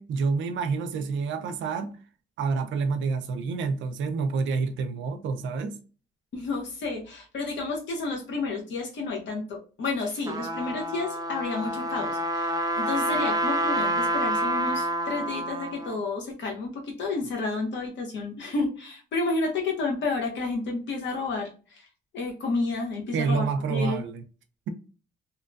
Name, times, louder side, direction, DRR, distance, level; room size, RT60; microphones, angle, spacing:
voice 1, 0.0-2.0 2.4-5.8 23.1-24.2, right 4 dB, 75° right, 0.5 m, -28 dB
voice 2, 6.3-21.9 22.1-24.0, left 3 dB, 65° left, 1.0 m, -31 dB
Trumpet, 10.0-16.0, right 1 dB, 20° right, 0.5 m, -28 dB
2.7 x 2.2 x 2.5 m
cardioid pair, 90°, 20 cm